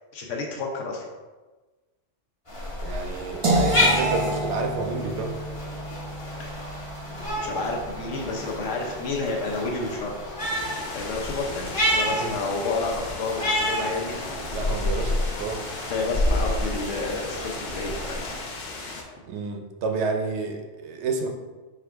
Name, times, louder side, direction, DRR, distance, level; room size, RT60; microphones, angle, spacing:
voice 1, 0.1-1.1 6.4-6.7 7.2-10.4 10.9-14.2 15.9-18.4, left 3 dB, 80° left, 1 dB, 1.1 m, -30 dB
sound 1, 2.5-18.4, left 1 dB, 30° left, 1.1 m, -29 dB
voice 2, 2.8-5.3 12.2-12.3 14.5-15.6 18.9-19.0 19.3-21.3, right 4 dB, 70° right, 3 dB, 0.9 m, -30 dB
sound 2, 3.4-9.3, right 1 dB, 35° right, 0.5 m, -30 dB
sound 3, 10.4-19.0, left 3 dB, 50° left, 0.6 m, -37 dB
4.6 x 2.5 x 4.5 m, 1.3 s
omnidirectional pair, 1.3 m